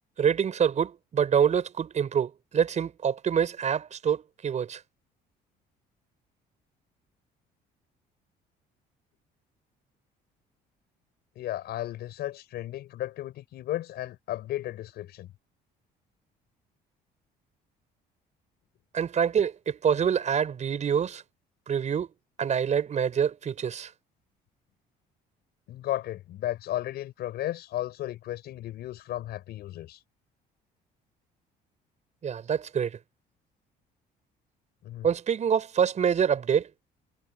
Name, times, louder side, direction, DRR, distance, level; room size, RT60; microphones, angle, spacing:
voice 1, 0.2-4.8 18.9-21.2 21.7-22.1 22.4-23.9 32.2-33.0 35.0-36.7, right 7 dB, 45° right, 6.2 m, -26 dB
voice 2, 11.4-15.3 25.7-30.0 34.8-35.1, left 14 dB, 70° left, 6.2 m, -34 dB
cardioid pair, 110°, 17 cm